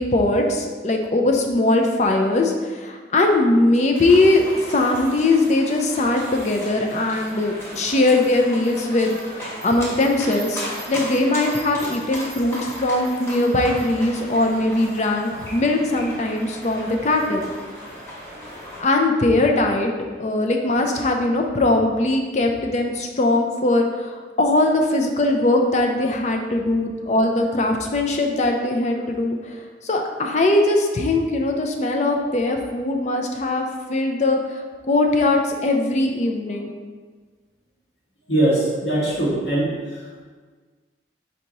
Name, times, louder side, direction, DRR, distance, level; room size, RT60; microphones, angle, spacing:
voice 1, 0.0-4.4 4.7-9.2 9.6-17.5 18.8-19.9 20.2-29.4 29.8-34.4 34.9-36.7, left 2 dB, 40° left, 3 dB, 0.4 m, -20 dB
sound 1, 3.9-18.8, equal, 15° left, 1.0 m, -36 dB
voice 2, 38.3-39.7, right 1 dB, 75° left, -6 dB, 1.5 m, -20 dB
4.6 x 2.9 x 3.9 m, 1.5 s
head